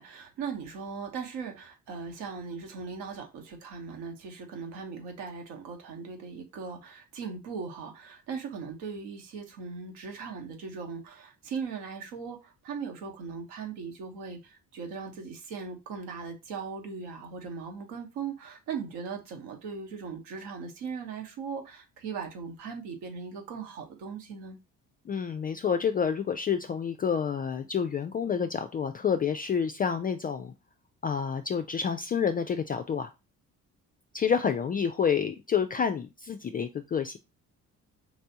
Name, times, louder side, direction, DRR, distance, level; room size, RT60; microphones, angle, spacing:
voice 1, 0.0-24.6, right 5 dB, 65° right, 1.2 m, -39 dB
voice 2, 25.1-30.5 31.0-33.1 34.1-37.2, left 7 dB, 20° left, 0.3 m, -28 dB
4.6 x 3.3 x 2.8 m
figure-of-eight pair, 45°, 45 cm